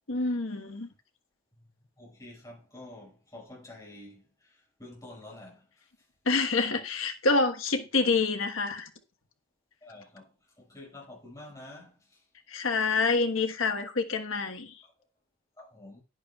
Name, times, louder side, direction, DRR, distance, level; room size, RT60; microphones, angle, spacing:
voice 1, 0.1-0.9 6.2-8.9 12.5-14.7, left 3 dB, 75° left, 1.4 m, -27 dB
voice 2, 2.0-5.9 9.8-10.3 10.6-12.2 14.8-14.9 15.6-16.0, left 1 dB, 15° left, 6.0 m, -48 dB
10.5 x 10.5 x 2.4 m
head